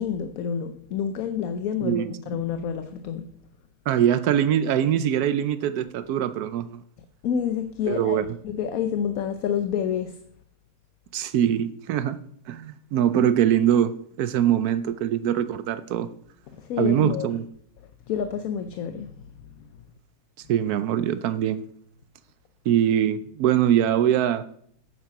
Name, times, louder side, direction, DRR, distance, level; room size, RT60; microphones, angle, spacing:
voice 1, 0.0-3.3 7.2-8.2 8.4-10.2 16.6-17.3 18.1-19.1, left 8 dB, 70° left, 1.1 m, -28 dB
voice 2, 1.8-2.4 3.9-6.8 7.9-8.3 11.1-12.2 12.5-13.9 14.2-16.1 16.8-17.4 20.5-21.6 22.7-24.4, right 10 dB, 85° right, 1.2 m, -23 dB
9.8 x 7.6 x 5.8 m
omnidirectional pair, 1.6 m